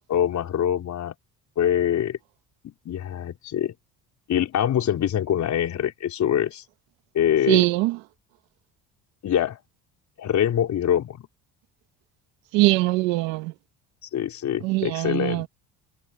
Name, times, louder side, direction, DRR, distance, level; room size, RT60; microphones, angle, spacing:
voice 1, 0.1-1.1 1.6-2.2 2.6-3.7 4.3-6.6 7.1-7.6 9.2-9.6 10.2-11.3 14.1-15.4, left 10 dB, 50° left, 4.4 m, -24 dB
voice 2, 7.5-8.0 12.5-13.5 14.6-15.5, right 21 dB, 90° right, 1.5 m, -22 dB
cardioid pair, 100°, 35 cm